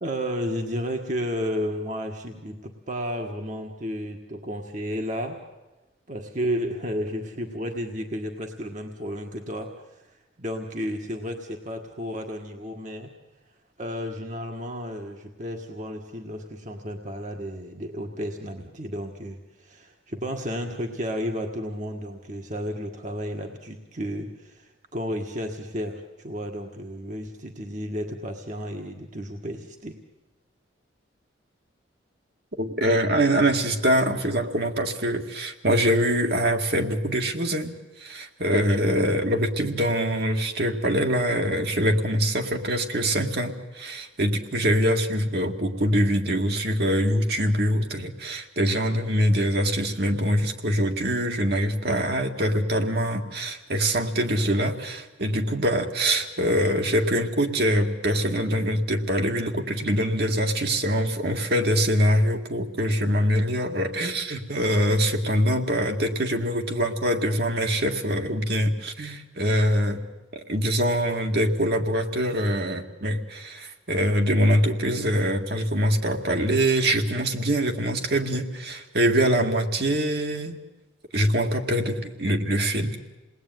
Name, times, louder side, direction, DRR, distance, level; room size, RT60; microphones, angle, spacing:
voice 1, 0.0-5.4 6.1-13.1 13.8-30.0, equal, 40° right, 3 dB, 1.6 m, -32 dB
voice 2, 32.6-70.0 70.5-80.6 81.1-83.0, equal, 55° right, 3 dB, 2.0 m, -24 dB
28.5 x 20.0 x 9.3 m, 1.1 s
head